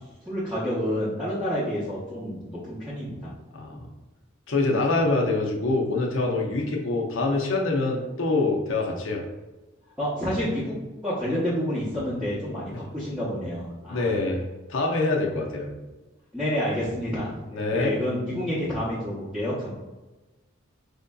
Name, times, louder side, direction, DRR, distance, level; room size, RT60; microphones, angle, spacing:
voice 1, 0.3-3.3 10.0-10.8 11.0-14.1 16.3-19.7, equal, 5° right, -11 dB, 0.7 m, -29 dB
voice 2, 3.5-3.9 4.5-9.2 13.9-14.4 14.7-15.7 17.5-17.9, left 3 dB, 65° left, 0 dB, 0.6 m, -25 dB
4.3 x 2.6 x 2.2 m, 1.1 s
head